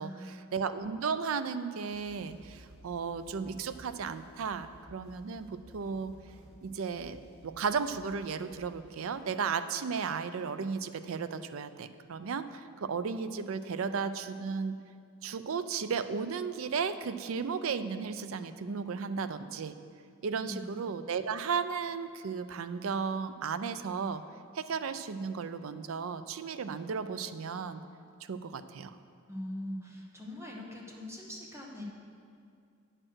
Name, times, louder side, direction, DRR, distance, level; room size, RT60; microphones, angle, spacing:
voice 1, 0.0-0.6 20.0-20.7 29.3-31.8, left 1 dB, 15° right, -2 dB, 1.3 m, -42 dB
voice 2, 0.5-6.1 6.6-14.8 15.2-19.8 20.2-24.2 24.5-27.8 28.3-28.9, right 5 dB, 70° right, 12 dB, 0.4 m, -34 dB
sound 1, 1.9-9.2, right 1 dB, 85° right, 1.7 m, -56 dB
8.9 x 6.6 x 6.1 m, 2.3 s
head